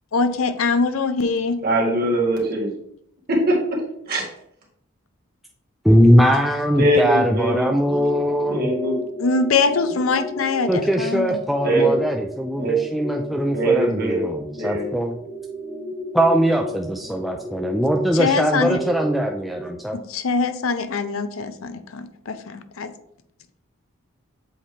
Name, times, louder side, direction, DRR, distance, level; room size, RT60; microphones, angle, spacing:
voice 1, 0.1-1.6 9.2-11.4 18.1-18.8 19.9-22.9, left 4 dB, 85° left, 11 dB, 0.6 m, -23 dB
voice 2, 1.6-2.7 3.3-3.5 4.1-4.3 6.8-8.0 8.5-9.0 11.6-12.0 12.6-12.8 13.5-14.2 14.6-14.9, right 1 dB, 45° right, -2 dB, 1.9 m, -21 dB
voice 3, 5.8-8.7 10.7-15.2 16.1-20.0, equal, ahead, 2 dB, 0.3 m, -20 dB
sound 1, 7.9-19.8, left 1 dB, 30° left, 0.8 m, -32 dB
7.4 x 4.3 x 3.2 m, 0.71 s
head